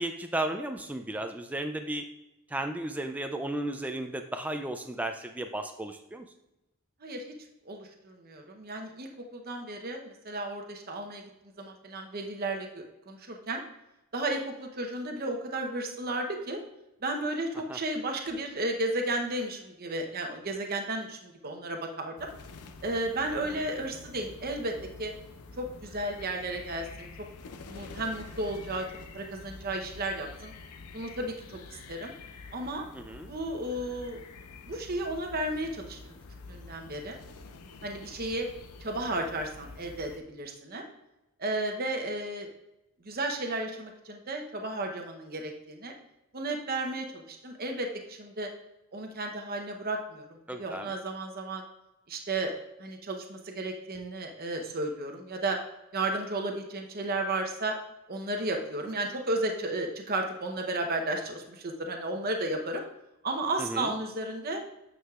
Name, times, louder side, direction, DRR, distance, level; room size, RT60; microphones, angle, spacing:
voice 1, 0.0-2.0 2.5-6.2 17.7-17.8 23.5-23.7 32.9-33.3 50.5-50.9 63.6-63.9, right 1 dB, 5° right, 5 dB, 0.3 m, -34 dB
voice 2, 7.0-7.3 7.6-11.2 11.6-13.6 14.1-16.6 17.0-22.3 22.8-25.1 25.6-27.1 27.7-28.9 29.1-30.5 30.9-32.1 32.5-32.8 33.3-34.2 34.7-36.1 36.5-37.2 37.8-38.5 38.8-40.8 41.4-42.5 43.0-45.9 46.3-48.5 48.9-51.6 52.1-52.5 52.8-55.6 55.9-57.8 58.1-62.8 63.2-64.6, right 2 dB, 40° right, 3 dB, 0.8 m, -33 dB
sound 1, 22.2-40.2, left 4 dB, 90° left, 0.6 m, -47 dB
9.3 x 6.3 x 2.4 m, 0.94 s
head